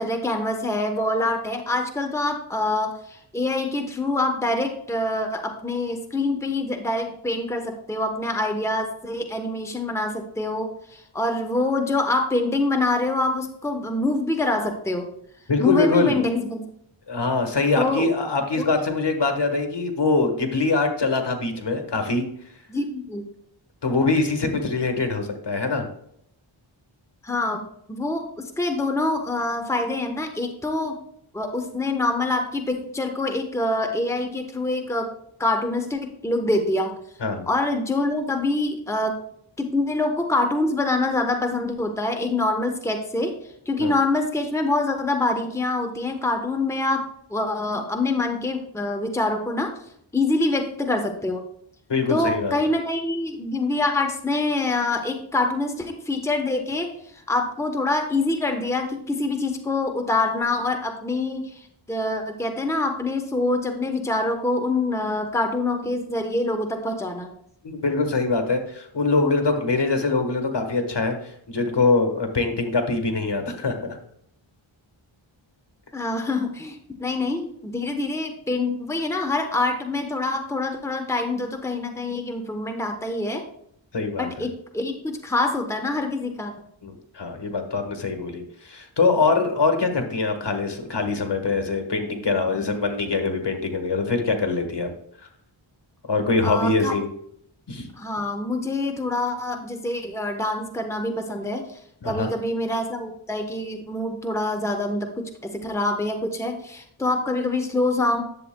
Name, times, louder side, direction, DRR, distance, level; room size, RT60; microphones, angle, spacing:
voice 1, 0.0-15.1 15.6-16.6 17.8-18.1 18.6-18.7 22.7-23.2 27.2-27.6 27.9-31.0 31.3-35.1 35.4-36.9 37.5-39.2 39.6-43.3 43.7-49.7 50.1-51.5 52.1-67.3 75.9-83.4 84.2-86.5 96.4-96.9 98.0-101.8 102.0-108.2, left 2 dB, 5° left, 4 dB, 0.9 m, -25 dB
voice 2, 15.5-16.2 17.1-22.3 23.8-25.9 37.2-37.4 43.8-43.9 51.9-52.6 67.6-74.0 83.9-84.5 86.8-94.9 96.0-97.1 97.7-97.9 102.0-102.3, left 3 dB, 55° left, 5 dB, 1.4 m, -23 dB
10.5 x 7.6 x 2.2 m, 0.71 s
wide cardioid pair, 60°, 49 cm